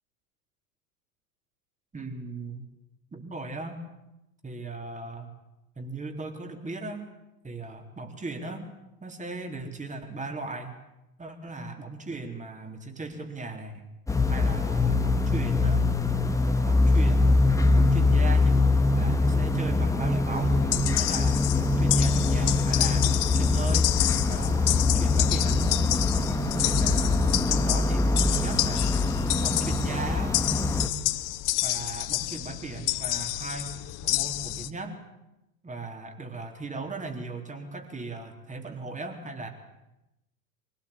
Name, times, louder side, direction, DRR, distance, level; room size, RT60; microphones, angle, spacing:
voice 1, 1.9-2.7 3.1-3.8 4.4-5.3 5.8-7.1 7.4-8.7 9.0-10.8 11.2-13.9 14.3-15.9 16.6-18.6 18.9-20.6 21.0-24.0 24.3-25.8 26.5-29.1 29.4-30.4 31.6-33.8 34.0-35.0 35.6-39.5, right 3 dB, 15° right, 5 dB, 3.8 m, -37 dB
sound 1, 14.1-30.9, left 3 dB, 5° left, 1.9 m, -23 dB
sound 2, 20.3-34.7, left 18 dB, 40° left, 1.0 m, -29 dB
24.0 x 18.0 x 8.7 m, 0.93 s
figure-of-eight pair, 80°, 47 cm